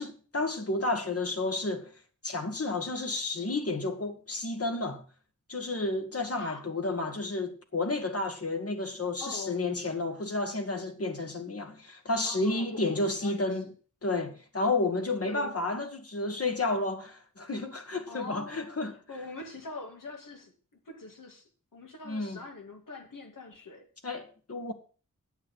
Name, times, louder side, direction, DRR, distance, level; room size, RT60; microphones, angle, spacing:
voice 1, 0.0-1.9 2.2-5.0 5.5-13.7 14.0-18.9 22.0-22.4 24.0-24.7, left 2 dB, 45° left, 1.6 m, -31 dB
voice 2, 6.3-6.7 9.2-9.6 12.2-13.5 15.2-15.6 18.1-20.5 20.9-23.9, left 3 dB, 80° left, 2.4 m, -43 dB
9.0 x 7.9 x 6.3 m
wide cardioid pair, 95°, 32 cm